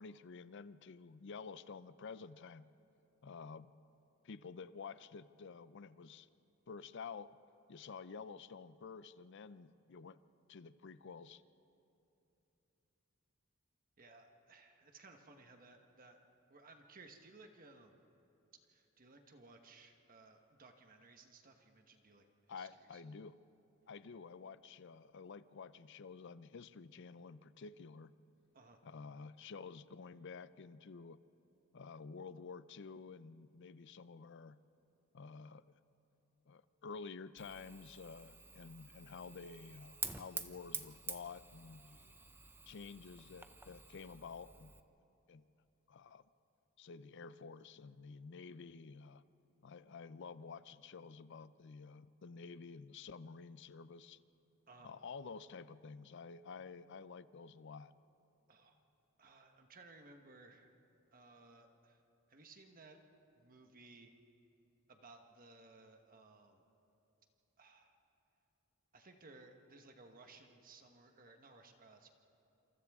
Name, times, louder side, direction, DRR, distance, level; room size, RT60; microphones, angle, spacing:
voice 1, 0.0-2.7 3.2-3.7 4.2-6.3 6.7-7.4 7.7-10.2 10.5-11.4 22.5-23.3 23.9-28.1 28.8-31.2 31.7-34.6 35.1-35.7 36.5-42.1 42.7-44.7 45.3-45.4 45.9-46.2 46.8-49.2 49.6-54.2 54.8-57.9, left 5 dB, 60° left, 15 dB, 0.5 m, -51 dB
voice 2, 14.0-16.2 16.5-18.0 18.7-23.0 28.5-28.8 54.7-54.9 58.5-58.8 59.2-60.7 61.1-62.0 62.3-63.0 63.4-64.1 64.9-66.6 67.6-68.0 68.9-72.1, right 3 dB, 45° right, 4 dB, 1.3 m, -60 dB
Fire, 37.4-44.8, right 4 dB, 10° right, 0.6 m, -49 dB
27.5 x 27.5 x 3.6 m, 2.9 s
head